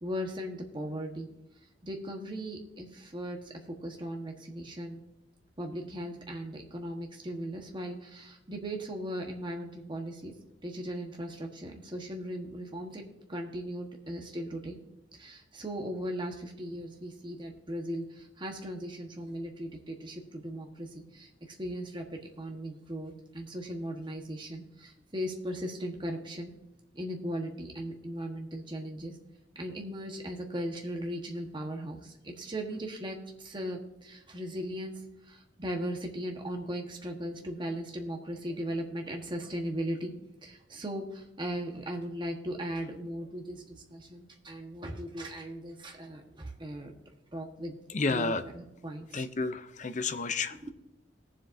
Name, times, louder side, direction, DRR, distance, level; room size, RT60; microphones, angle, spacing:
voice 1, 0.0-1.3 1.8-5.0 5.6-10.3 10.6-13.0 13.3-14.8 15.1-26.5 26.9-29.1 29.5-34.9 35.3-40.1 40.4-46.9 47.3-47.8 48.1-49.2 50.5-50.7, equal, 25° right, 2 dB, 1.3 m, -38 dB
voice 2, 47.9-48.4 49.1-50.7, left 3 dB, 40° left, 10 dB, 0.6 m, -31 dB
19.0 x 7.5 x 2.7 m, 0.90 s
head